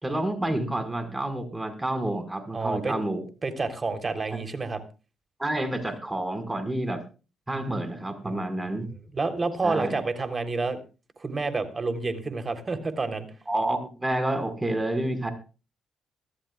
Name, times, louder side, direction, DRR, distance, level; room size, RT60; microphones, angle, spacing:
voice 1, 0.0-3.2 5.4-7.0 7.5-8.9 9.6-10.0 13.5-15.3, right 1 dB, 15° right, 8 dB, 5.3 m, -29 dB
voice 2, 2.5-3.0 3.4-4.8 8.2-8.4 9.1-10.8 11.2-13.3, right 3 dB, 30° right, 8 dB, 3.6 m, -29 dB
24.0 x 14.5 x 2.4 m, 0.34 s
cardioid pair, 90°, 0 cm